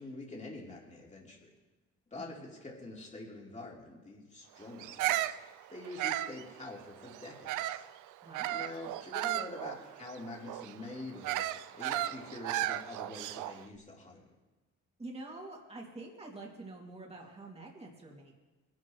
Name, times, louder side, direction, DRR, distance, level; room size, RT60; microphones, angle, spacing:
voice 1, 0.0-1.5 2.1-5.4 5.7-7.9 8.5-14.3, left 2 dB, 25° left, -2 dB, 3.3 m, -46 dB
Bird vocalization bird call bird song, 4.8-7.9 8.3-13.6, right 14 dB, 90° right, 0.5 m, -35 dB
voice 2, 8.2-8.6 15.0-18.3, right 2 dB, 20° right, -2 dB, 2.5 m, -47 dB
21.5 x 12.0 x 3.2 m, 1.2 s
cardioid pair, 90°, 30 cm